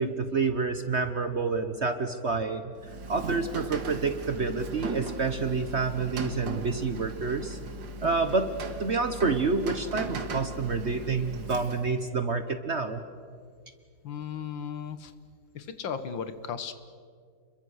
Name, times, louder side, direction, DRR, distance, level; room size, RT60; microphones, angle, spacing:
voice 1, 0.0-2.7 3.1-7.6 8.0-8.5 8.8-13.0, right 4 dB, 45° right, 9 dB, 1.0 m, -28 dB
Rain, 2.8-12.0, right 3 dB, 65° right, 2.3 m, -38 dB
voice 2, 14.0-15.1 15.5-16.7, left 7 dB, 75° left, 11 dB, 2.0 m, -35 dB
30.0 x 22.5 x 6.5 m, 2.1 s
omnidirectional pair, 2.1 m